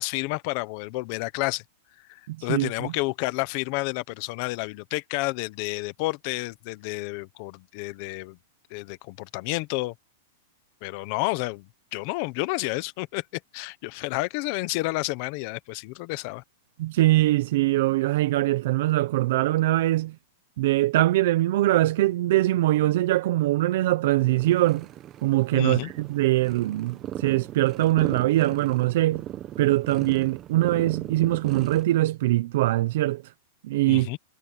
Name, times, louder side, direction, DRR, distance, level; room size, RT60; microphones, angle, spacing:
voice 1, 0.0-1.6 2.1-8.4 8.7-9.9 10.8-13.2 13.5-16.4 25.5-25.9 33.9-34.2, left 22 dB, 35° left, 1.0 m, -30 dB
voice 2, 2.3-2.9 16.8-20.1 20.6-24.9 25.2-29.2 29.6-33.2 33.6-34.1, right 16 dB, 50° right, 0.6 m, -22 dB
sound 1, 24.2-31.8, right 12 dB, 20° right, 1.0 m, -37 dB
supercardioid pair, 175°, 0 cm